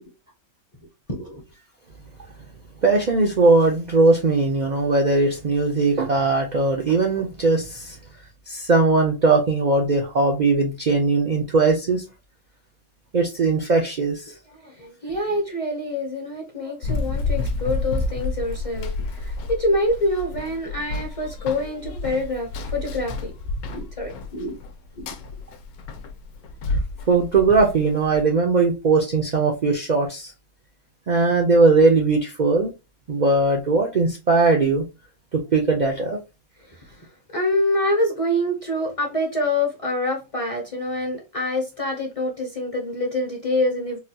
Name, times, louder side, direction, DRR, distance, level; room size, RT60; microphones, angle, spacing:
voice 1, 1.1-1.4 14.6-18.9 19.2-23.3 23.6-24.6 25.0-25.1 37.3-44.0, left 1 dB, 40° left, 0.5 m, -26 dB
voice 2, 2.8-8.0 8.5-12.0 13.1-14.3 27.1-30.3 31.1-32.7 33.1-34.9 35.3-36.2, right 3 dB, 90° right, 0.4 m, -19 dB
Run, 16.8-28.2, left 3 dB, 80° left, 1.1 m, -30 dB
3.8 x 2.2 x 2.7 m
omnidirectional pair, 1.5 m